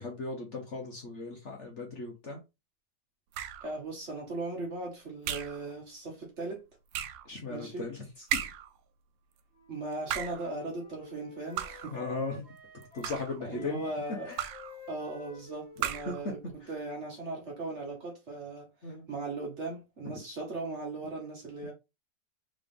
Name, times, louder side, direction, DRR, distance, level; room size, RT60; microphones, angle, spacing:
voice 1, 0.0-2.4 7.2-8.0 8.3-8.5 11.9-12.4 12.9-13.8 14.3-14.4 16.1-16.2 18.8-19.0 20.0-20.1, left 3 dB, 45° left, 1.1 m, -37 dB
sound 1, 3.3-3.8 5.2-5.6 6.9-7.3 8.3-8.8 9.9-10.5 11.6-12.0 12.8-13.4 14.4-14.8 15.8-16.2, right 10 dB, 90° right, 1.3 m, -35 dB
voice 2, 3.6-6.7 7.5-7.9 9.7-12.0 13.4-14.3 14.9-21.7, right 2 dB, 45° right, 1.5 m, -38 dB
Wind instrument woodwind instrument, 9.5-17.5, equal, 20° right, 2.2 m, -51 dB
3.8 x 3.7 x 3.5 m
omnidirectional pair, 1.9 m